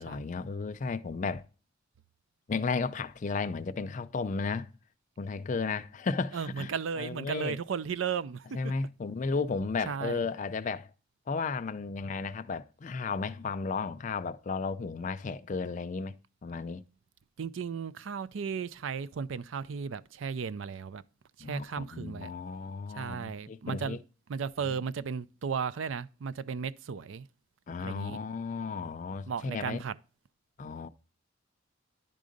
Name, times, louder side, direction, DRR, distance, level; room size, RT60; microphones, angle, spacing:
voice 1, 0.0-1.4 2.5-4.7 5.2-6.7 7.0-7.6 8.5-10.9 11.3-16.2 16.4-16.8 21.4-24.0 24.7-24.8 27.7-29.8 30.6-30.9, left 4 dB, 40° left, 0.4 m, -34 dB
voice 2, 6.3-8.7 9.9-10.2 17.4-21.0 21.4-22.4 22.9-24.0 24.3-27.3 27.8-28.2 29.3-30.0, right 6 dB, 75° right, 0.4 m, -35 dB
10.5 x 3.8 x 5.1 m
head